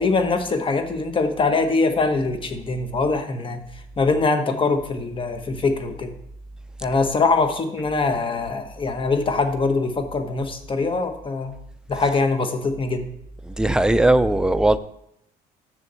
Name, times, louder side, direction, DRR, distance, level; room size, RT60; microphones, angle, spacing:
voice 1, 0.0-3.6 4.0-6.1 6.8-11.5 11.9-13.1, left 3 dB, 30° left, 7 dB, 1.2 m, -23 dB
voice 2, 13.4-14.8, right 1 dB, 5° right, 11 dB, 0.5 m, -18 dB
7.0 x 6.8 x 6.9 m, 0.76 s
cardioid pair, 110°, 17 cm